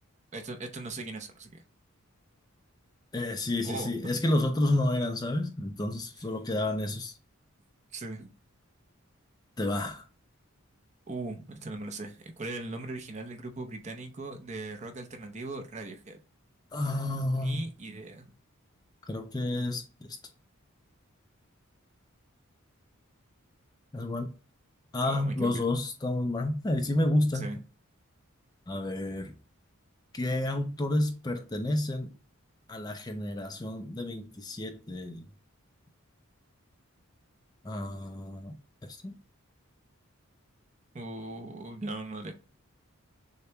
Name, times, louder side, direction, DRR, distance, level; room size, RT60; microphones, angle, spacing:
voice 1, 0.3-1.6 3.6-4.0 7.9-8.3 11.1-16.2 17.4-18.3 25.0-25.6 27.3-27.6 40.9-42.3, right 2 dB, 30° right, 0.7 m, -39 dB
voice 2, 3.1-7.1 9.6-10.0 16.7-17.7 19.1-20.2 23.9-24.3 24.9-27.5 28.7-29.3 30.1-32.1 32.7-35.3 37.6-38.5 38.8-39.2, left 1 dB, 20° left, 0.4 m, -30 dB
6.5 x 2.2 x 2.9 m
head